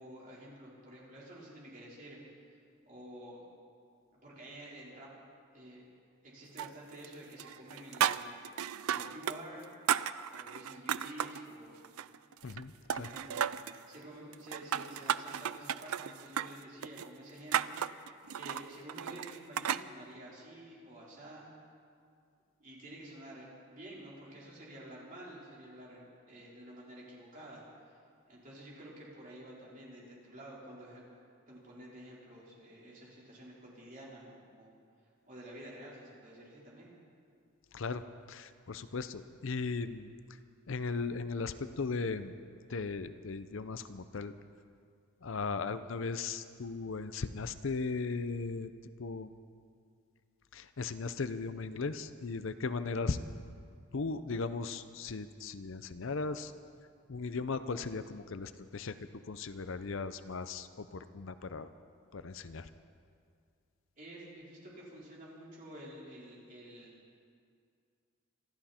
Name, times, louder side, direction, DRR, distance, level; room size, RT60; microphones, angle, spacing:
voice 1, 0.0-2.2 2.5-2.6 2.9-3.4 4.1-5.1 5.5-5.8 6.2-9.7 10.3-11.8 13.0-18.1 18.3-21.5 22.6-28.0 28.3-31.0 31.5-34.7 35.3-36.9 64.0-67.0, right 1 dB, 35° right, -6 dB, 4.4 m, -50 dB
sound 1, 6.6-7.1 7.4-9.4 9.6-11.4 11.8-12.6 12.9-13.8 14.3-19.9, right 9 dB, 85° right, 0.4 m, -34 dB
voice 2, 12.4-13.1 37.7-40.1 40.7-42.3 42.7-44.3 45.2-48.7 49.0-49.3 50.5-53.2 53.9-56.5 57.1-58.9 59.3-61.7 62.1-62.7, left 4 dB, 65° left, 12 dB, 0.6 m, -37 dB
26.5 x 12.5 x 4.4 m, 2.2 s
head